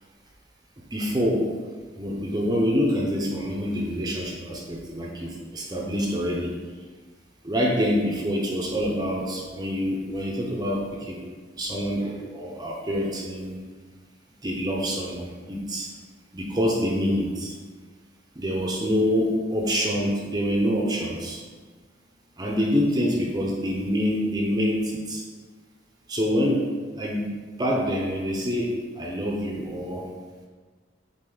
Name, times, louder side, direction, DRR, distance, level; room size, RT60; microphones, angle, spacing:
voice 1, 0.9-1.6 1.9-6.5 7.4-11.2 11.6-13.6 14.4-15.9 16.3-17.5 18.4-21.4 22.4-25.2 26.1-27.3 27.6-30.1, equal, 20° right, -1 dB, 0.7 m, -26 dB
7.8 x 3.7 x 3.9 m, 1.5 s
head